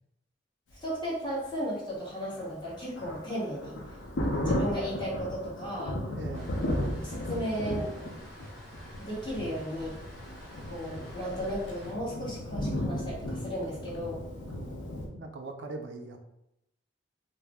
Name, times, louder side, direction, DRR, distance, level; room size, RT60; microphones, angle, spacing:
voice 1, 0.8-3.8 4.2-6.0 7.0-7.9 9.0-9.9 10.6-14.2, equal, 25° left, -7 dB, 1.2 m, -35 dB
Thunder, 2.2-15.1, left 1 dB, 85° left, 0.5 m, -35 dB
voice 2, 6.1-6.6 14.5-16.2, right 3 dB, 80° right, 5 dB, 0.4 m, -42 dB
sound 1, 6.3-11.9, left 1 dB, 5° left, 0.9 m, -50 dB
2.5 x 2.0 x 3.4 m, 0.83 s
head